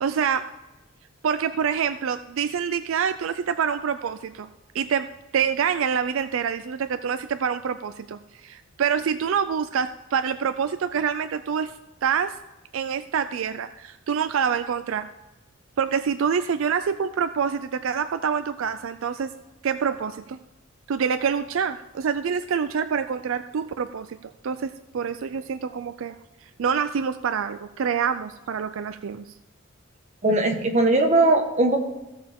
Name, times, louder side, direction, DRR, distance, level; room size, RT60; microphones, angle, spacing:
voice 1, 0.0-0.5 1.2-4.5 4.7-5.1 5.3-11.7 12.0-12.4 12.7-15.1 15.8-19.3 19.6-20.4 20.9-26.2 26.6-29.3, right 7 dB, 70° right, 11 dB, 0.4 m, -26 dB
voice 2, 30.2-31.8, right 2 dB, 35° right, 3 dB, 1.3 m, -19 dB
16.0 x 6.7 x 3.6 m, 1.0 s
head